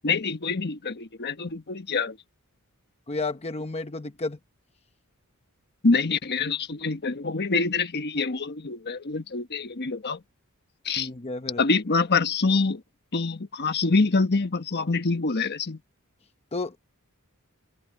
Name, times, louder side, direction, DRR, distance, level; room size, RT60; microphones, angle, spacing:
voice 1, 0.0-2.2 5.8-10.2 10.8-11.1 11.6-12.8 13.1-15.8, left 4 dB, 50° left, 1.3 m, -25 dB
voice 2, 3.1-4.4 11.0-11.6 16.5-16.8, left 3 dB, 30° left, 1.0 m, -31 dB
head